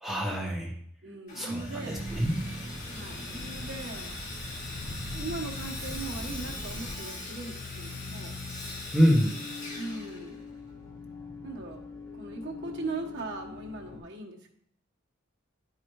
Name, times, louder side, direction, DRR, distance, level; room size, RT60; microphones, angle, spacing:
voice 1, 0.0-0.7 1.3-2.4 8.9-9.4, equal, ahead, -4 dB, 1.2 m, -26 dB
voice 2, 1.0-2.0 2.9-4.2 5.1-8.4 9.7-10.4 11.4-11.8 12.1-14.5, right 3 dB, 60° right, 0 dB, 1.2 m, -39 dB
Sawing, 1.3-10.7, left 2 dB, 40° left, 1.8 m, -42 dB
sound 1, 1.6-14.0, left 3 dB, 15° left, 2.6 m, -43 dB
sound 2, 1.9-7.0, equal, 70° left, 1.7 m, -41 dB
11.0 x 4.8 x 3.1 m, 0.68 s
head